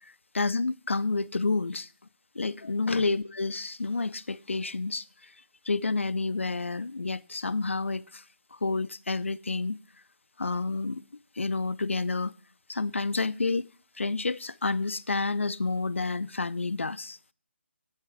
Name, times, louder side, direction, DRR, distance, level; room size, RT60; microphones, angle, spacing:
voice 1, 0.3-1.9 2.4-5.0 5.7-8.2 8.5-9.8 10.4-11.0 11.4-12.3 12.7-13.7 14.0-17.2, left 3 dB, 75° left, 0.5 m, -29 dB
8.2 x 6.8 x 7.6 m
figure-of-eight pair, 145°, 7 cm